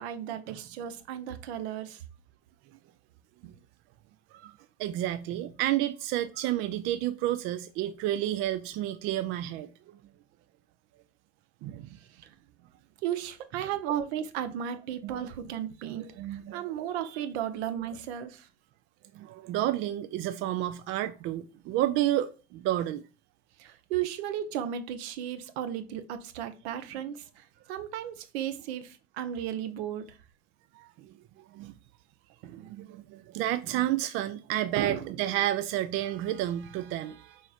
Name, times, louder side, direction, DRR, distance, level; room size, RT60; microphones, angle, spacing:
voice 1, 0.0-2.0 3.4-3.5 4.3-4.6 12.0-12.3 13.0-18.5 23.6-30.2 32.4-32.7 34.8-35.2, right 10 dB, 60° right, 0.7 m, -35 dB
voice 2, 4.8-9.7 11.6-11.9 15.0-15.1 16.0-16.6 17.0-17.2 19.1-23.0 30.7-31.7 32.5-37.4, right 13 dB, 35° right, 0.4 m, -31 dB
4.9 x 4.0 x 2.4 m
figure-of-eight pair, 65°, 37 cm